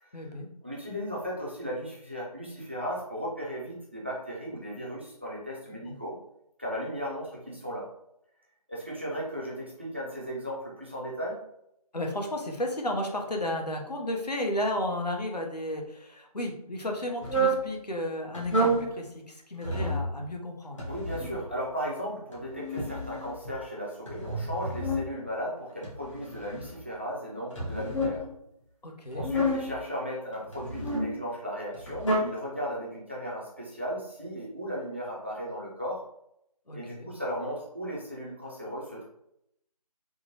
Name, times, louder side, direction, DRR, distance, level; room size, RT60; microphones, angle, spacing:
voice 1, 0.1-0.5 5.8-6.0 11.9-20.9 28.8-29.3 36.7-37.1, left 1 dB, 85° left, 1 dB, 0.8 m, -33 dB
voice 2, 0.6-6.2 6.6-7.9 8.7-11.4 20.9-28.3 29.1-36.0 36.7-39.0, equal, 20° right, -5 dB, 0.4 m, -36 dB
sound 1, 17.2-17.6 18.3-18.9 19.6-20.1 20.8-21.4 22.3-23.6 24.1-25.1 25.8-26.8 27.5-28.2 29.1-29.8 30.5-31.1 31.7-32.2, right 1 dB, 50° left, 1.0 m, -29 dB
3.6 x 2.1 x 2.8 m, 0.78 s
figure-of-eight pair, 160°, 20 cm